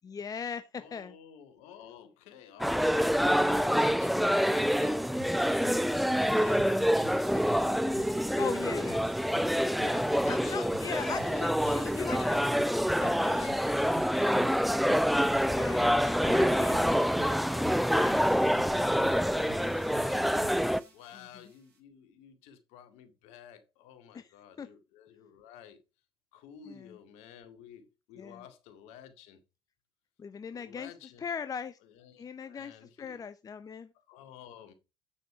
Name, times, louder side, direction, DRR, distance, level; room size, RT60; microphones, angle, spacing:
voice 1, 0.0-1.1 8.4-9.3 9.8-12.4 13.0-13.5 15.5-15.9 16.2-17.4 17.9-18.2 21.1-21.3 24.1-24.3 24.6-24.7 26.7-27.0 28.2-28.4 30.2-30.9 31.2-31.8 32.2-33.9, left 6 dB, 30° left, 0.8 m, -39 dB
voice 2, 0.7-7.2 7.7-8.2 8.5-8.7 9.8-12.5 13.2-14.5 16.0-17.8 18.4-20.2 20.9-25.8 26.3-29.4 30.5-31.3 31.8-33.2 34.1-34.7, left 9 dB, 65° left, 2.1 m, -52 dB
sound 1, 2.6-20.8, equal, ahead, 0.6 m, -26 dB
sound 2, 5.2-21.8, right 7 dB, 70° right, 5.2 m, -52 dB
8.6 x 6.6 x 4.7 m
hypercardioid pair, 60°, 12 cm